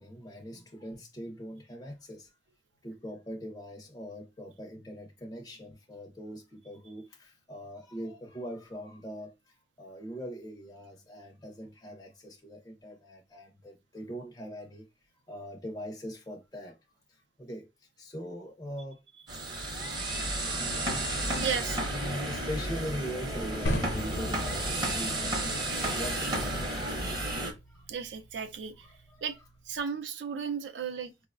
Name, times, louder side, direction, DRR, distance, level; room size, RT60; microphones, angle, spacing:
voice 1, 0.0-2.3 2.8-9.3 9.8-14.9 15.3-16.7 17.4-17.7 18.0-19.0 19.8-20.8 21.9-25.3 25.7-27.0 27.7-27.8 28.8-29.3, equal, 20° left, 0.4 m, -42 dB
sound 1, 19.3-27.5, right 1 dB, 25° right, 0.7 m, -32 dB
voice 2, 21.4-21.8 27.9-28.9 29.2-29.4 29.7-31.1, right 7 dB, 80° right, 0.4 m, -34 dB
sound 2, 23.7-29.8, equal, 85° left, 0.7 m, -39 dB
4.5 x 2.1 x 2.4 m
head